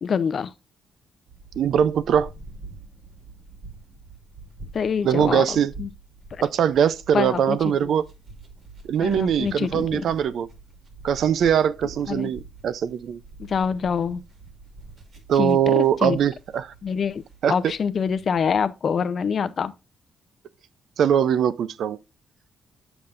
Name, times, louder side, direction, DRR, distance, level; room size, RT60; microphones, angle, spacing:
voice 1, 0.0-0.5 4.7-5.4 5.8-5.9 6.3-6.4 7.1-7.9 9.0-10.1 12.1-12.3 13.4-14.2 15.3-16.2 16.8-17.2 17.5-19.7, left 6 dB, 45° left, 0.6 m, -25 dB
sound 1, 1.3-18.7, right 2 dB, 45° right, 2.4 m, -45 dB
voice 2, 1.6-2.3 5.0-5.7 6.4-8.1 8.9-10.5 11.0-13.2 15.3-16.7 17.4-17.5 21.0-22.0, right 9 dB, 65° right, 0.5 m, -21 dB
8.6 x 7.0 x 2.5 m
cardioid pair, 150°, 0 cm